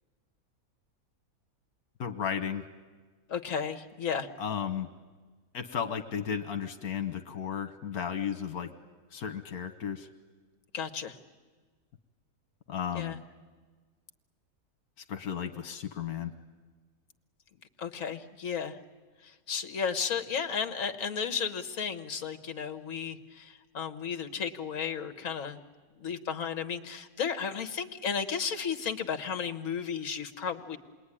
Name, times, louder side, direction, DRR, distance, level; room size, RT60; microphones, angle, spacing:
voice 1, 2.0-2.6 4.4-4.9 5.5-8.7 9.1-10.1 12.7-13.2 15.1-16.3, left 8 dB, 85° left, 8 dB, 1.5 m, -34 dB
voice 2, 3.3-4.3 10.7-11.2 12.9-13.2 17.8-18.8 19.2-25.6 26.0-30.8, left 6 dB, 65° left, 7 dB, 1.7 m, -34 dB
27.5 x 21.5 x 9.9 m, 1.4 s
omnidirectional pair, 1.5 m